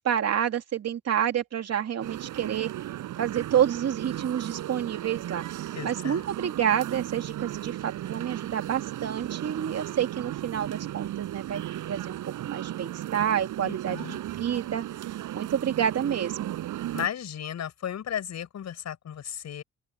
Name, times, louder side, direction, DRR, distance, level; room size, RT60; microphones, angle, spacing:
voice 1, 0.0-2.7 3.2-5.4 5.8-11.6 11.9-12.2 12.4-14.8 15.3-16.6, right 9 dB, 55° right, 2.6 m, -28 dB
sound 1, 2.0-17.1, right 13 dB, 85° right, 6.4 m, -35 dB
voice 2, 5.7-6.2 13.6-14.2 16.9-19.6, left 9 dB, 60° left, 7.4 m, -34 dB
open air
cardioid pair, 90°, 30 cm